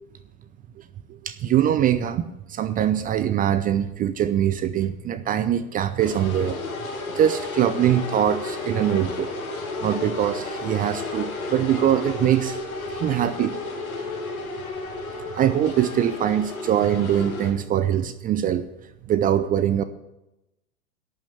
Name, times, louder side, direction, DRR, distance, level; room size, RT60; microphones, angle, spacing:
voice 1, 1.1-6.6 7.1-9.3 9.8-12.6 12.9-13.6 15.2-18.6 19.1-19.8, right 10 dB, 20° right, 12 dB, 0.6 m, -23 dB
sound 1, 6.0-17.5, left 3 dB, 75° left, 3.8 m, -32 dB
11.5 x 8.9 x 8.5 m, 0.93 s
figure-of-eight pair, 95°, 43 cm